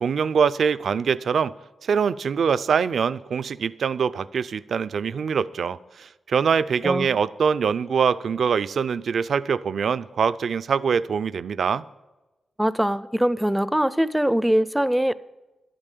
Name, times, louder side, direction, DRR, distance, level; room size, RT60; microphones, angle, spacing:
voice 1, 0.0-1.5 1.8-11.8, right 6 dB, 70° right, 0.4 m, -23 dB
voice 2, 12.6-15.1, equal, 5° right, 0.4 m, -22 dB
12.0 x 8.9 x 8.4 m
cardioid pair, 85°, 0 cm